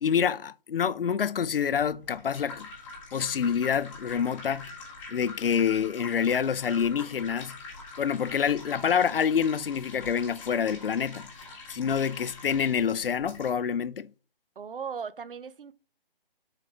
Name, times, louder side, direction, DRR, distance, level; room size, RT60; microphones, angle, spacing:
voice 1, 0.0-2.7 3.1-4.7 5.1-7.6 8.0-11.3 11.7-14.1, left 7 dB, 70° left, 0.5 m, -27 dB
sound 1, 1.8-13.5, left 3 dB, 5° left, 0.9 m, -45 dB
sound 2, 4.0-4.9 5.2-5.4 5.8-6.2 6.8-7.1 7.6-8.3 9.8-10.3 11.3-11.5 12.0-12.3, left 5 dB, 35° left, 0.9 m, -55 dB
voice 2, 14.6-15.7, right 6 dB, 65° right, 0.7 m, -37 dB
6.6 x 4.1 x 4.7 m
figure-of-eight pair, 160°, 29 cm